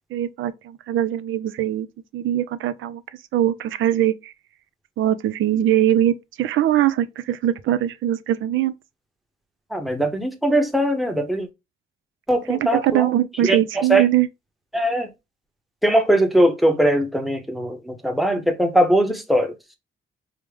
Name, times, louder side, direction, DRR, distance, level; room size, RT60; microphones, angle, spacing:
voice 1, 0.1-1.9 2.1-3.0 3.3-4.3 5.0-8.7 12.5-14.3, right 12 dB, 85° right, 0.5 m, -21 dB
voice 2, 9.7-11.5 12.3-13.1 13.4-13.6 13.9-14.0 14.7-15.1 15.8-19.5, right 1 dB, ahead, 0.8 m, -20 dB
4.8 x 2.1 x 3.3 m
cardioid pair, 100°, 20 cm